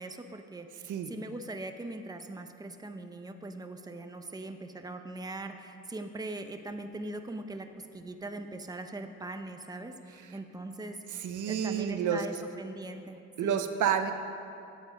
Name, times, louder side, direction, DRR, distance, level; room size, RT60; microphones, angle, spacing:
voice 1, 0.0-11.0 11.4-13.6, right 2 dB, 15° right, 6 dB, 0.8 m, -41 dB
voice 2, 11.2-12.2 13.4-14.1, right 8 dB, 80° right, 7 dB, 0.9 m, -29 dB
15.5 x 9.3 x 5.2 m, 2.6 s
cardioid pair, 90°, 30 cm